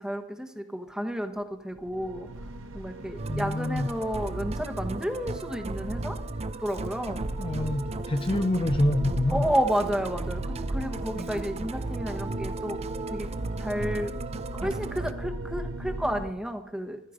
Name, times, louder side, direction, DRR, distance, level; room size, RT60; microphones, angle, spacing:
voice 1, 0.0-2.3 2.7-6.2 6.6-7.2 9.3-12.8 13.1-13.3 13.6-14.1 14.5-17.1, equal, 5° right, 6 dB, 1.2 m, -31 dB
sound 1, 1.7-16.3, right 1 dB, 70° right, 1.0 m, -39 dB
Musical instrument, 3.2-15.1, right 3 dB, 30° right, 0.6 m, -35 dB
voice 2, 3.3-3.9 7.4-9.5 11.1-11.4, left 1 dB, 25° left, 7 dB, 0.6 m, -27 dB
14.5 x 13.0 x 5.1 m, 0.78 s
head